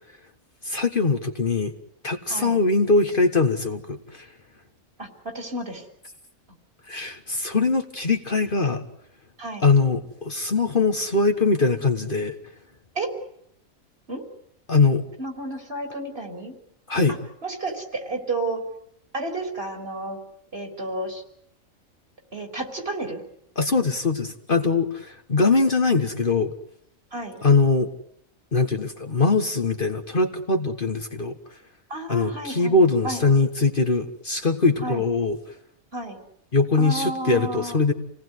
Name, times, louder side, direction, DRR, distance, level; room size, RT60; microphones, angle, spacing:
voice 1, 0.6-1.7 2.0-4.3 6.9-8.8 9.6-12.4 14.7-15.0 16.9-17.2 23.6-26.5 27.4-27.9 28.5-31.4 32.1-35.4 36.5-37.9, left 3 dB, 40° left, 6 dB, 1.6 m, -22 dB
voice 2, 5.0-5.8 9.4-9.7 12.9-13.1 14.1-14.2 15.2-16.5 17.4-18.6 19.1-20.2 20.5-21.2 22.3-23.2 27.1-27.4 31.9-33.2 34.8-35.0 35.9-36.2 36.8-37.8, right 2 dB, 45° right, 5 dB, 4.1 m, -31 dB
28.0 x 18.5 x 9.6 m, 0.72 s
omnidirectional pair, 1.4 m